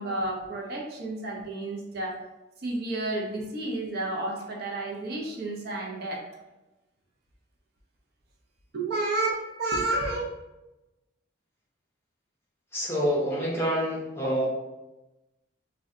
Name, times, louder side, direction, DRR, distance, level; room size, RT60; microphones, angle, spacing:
voice 1, 0.0-2.2 2.6-6.2 8.7-10.3, right 2 dB, 50° right, -1 dB, 0.5 m, -31 dB
voice 2, 12.7-14.5, equal, 10° left, -5 dB, 0.6 m, -27 dB
2.6 x 2.1 x 3.6 m, 1.0 s
head